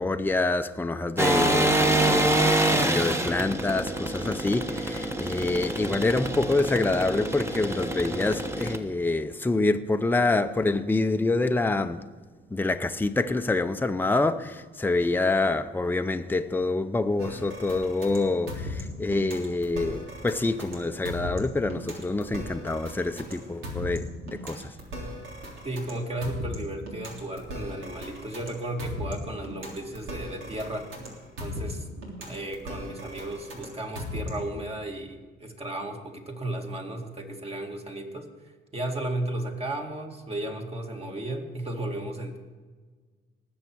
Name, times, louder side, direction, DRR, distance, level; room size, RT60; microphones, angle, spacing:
voice 1, 0.0-12.0 12.5-24.7, left 2 dB, 10° left, 0.7 m, -26 dB
sound 1, 1.2-8.8, right 1 dB, 15° right, 1.1 m, -26 dB
sound 2, 17.2-34.6, left 1 dB, 80° right, 3.4 m, -37 dB
voice 2, 25.6-30.9 31.4-38.3 38.7-42.4, right 1 dB, 30° right, 2.2 m, -34 dB
19.0 x 7.3 x 4.6 m
cardioid pair, 90°, 20 cm